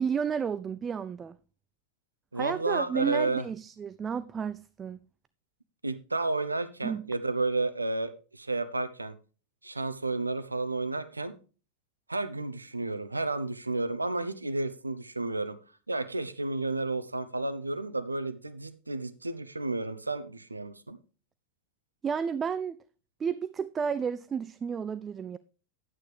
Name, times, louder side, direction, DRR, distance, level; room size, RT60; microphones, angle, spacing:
voice 1, 0.0-1.4 2.3-5.0 6.8-7.1 22.0-22.8 23.2-25.4, right 6 dB, 20° right, 0.4 m, -32 dB
voice 2, 2.3-3.5 5.8-9.2 9.6-11.3 12.1-15.6 15.9-21.0, right 2 dB, 80° right, 0.8 m, -31 dB
11.0 x 9.0 x 3.3 m
figure-of-eight pair, 90°, 0 cm